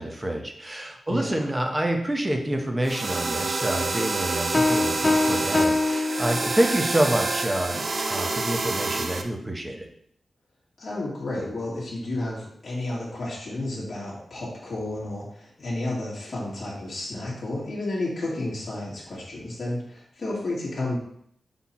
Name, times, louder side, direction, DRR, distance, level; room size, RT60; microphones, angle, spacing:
voice 1, 0.0-9.9, right 1 dB, 15° right, 3 dB, 0.9 m, -27 dB
voice 2, 1.1-1.5 10.8-21.0, left 2 dB, 45° left, -7 dB, 2.0 m, -31 dB
sound 1, 2.8-9.2, right 3 dB, 45° right, 0.6 m, -28 dB
sound 2, 4.5-6.9, left 2 dB, 30° left, 0.3 m, -24 dB
5.7 x 4.4 x 4.2 m, 0.68 s
wide cardioid pair, 120°, 0 cm